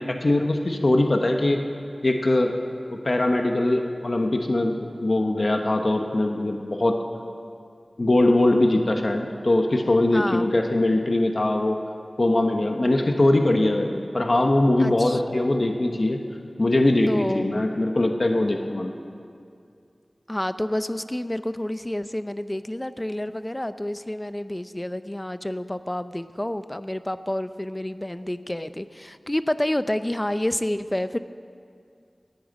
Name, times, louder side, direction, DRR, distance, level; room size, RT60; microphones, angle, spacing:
voice 1, 0.0-1.6 2.0-2.6 2.9-7.0 8.0-11.8 12.2-16.2 16.6-18.9, left 1 dB, 55° left, 4 dB, 1.0 m, -21 dB
voice 2, 10.1-10.7 14.8-15.2 17.1-17.5 20.3-31.2, left 1 dB, 20° left, 12 dB, 0.5 m, -29 dB
14.0 x 9.2 x 9.1 m, 2.3 s
wide cardioid pair, 55°, 0 cm